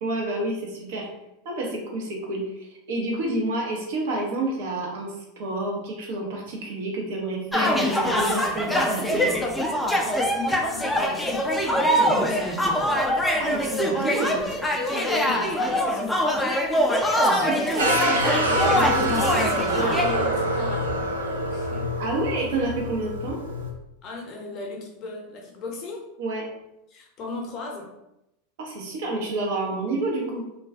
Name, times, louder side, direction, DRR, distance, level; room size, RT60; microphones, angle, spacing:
voice 1, 0.0-1.1 1.4-9.3 13.4-14.5 17.2-17.9 22.0-23.4 26.2-26.4 28.6-30.4, right 2 dB, 65° right, -1 dB, 0.7 m, -29 dB
sound 1, 7.5-20.1, equal, 5° left, 0.4 m, -23 dB
voice 2, 10.3-12.6 14.1-16.4 17.5-18.3 18.7-21.1 21.5-21.9 24.0-26.0 26.9-27.9, left 3 dB, 40° left, 0 dB, 0.7 m, -37 dB
sound 2, 17.8-23.7, right 1 dB, 90° right, 0.4 m, -26 dB
2.3 x 2.2 x 2.4 m, 0.88 s
hypercardioid pair, 90°, 0 cm